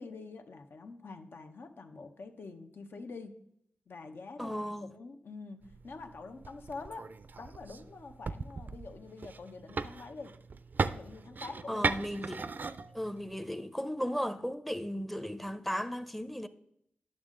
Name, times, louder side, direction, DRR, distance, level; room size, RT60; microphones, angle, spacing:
voice 1, 0.0-3.4 3.9-7.1 7.4-10.3 10.9-11.9, left 3 dB, 70° left, 0.8 m, -46 dB
voice 2, 4.4-4.9 11.7-12.5 12.9-16.5, equal, 5° left, 0.6 m, -35 dB
sound 1, 5.6-13.6, right 4 dB, 50° right, 0.4 m, -38 dB
10.5 x 6.4 x 3.8 m
cardioid pair, 60°, 4 cm